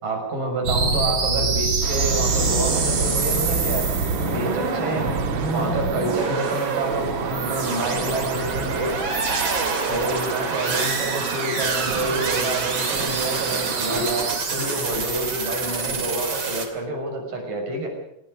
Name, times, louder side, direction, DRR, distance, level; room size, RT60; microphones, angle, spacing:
voice 1, 0.0-3.9 4.2-5.0 5.5-9.0 9.9-17.9, right 2 dB, 50° right, 3 dB, 7.7 m, -28 dB
sound 1, 0.6-16.6, right 4 dB, 30° right, 2.9 m, -25 dB
sound 2, 1.8-14.4, right 13 dB, 70° right, 2.4 m, -34 dB
sound 3, 6.7-16.1 16.4-16.5 16.7-16.9, right 1 dB, 90° right, 8.0 m, -38 dB
27.0 x 18.5 x 6.6 m, 0.81 s
omnidirectional pair, 5.0 m